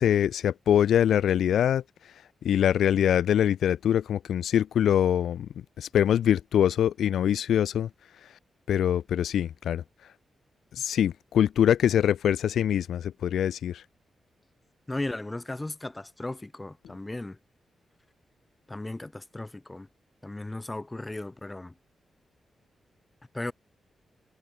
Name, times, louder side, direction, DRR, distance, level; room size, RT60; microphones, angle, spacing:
voice 1, 0.0-1.8 2.4-5.5 5.8-7.9 8.7-9.8 10.7-13.8, left 10 dB, 90° left, 0.4 m, -24 dB
voice 2, 14.9-17.4 18.7-19.9 20.2-21.7 23.3-23.5, left 2 dB, 15° left, 1.7 m, -36 dB
cardioid pair, 95°, 0 cm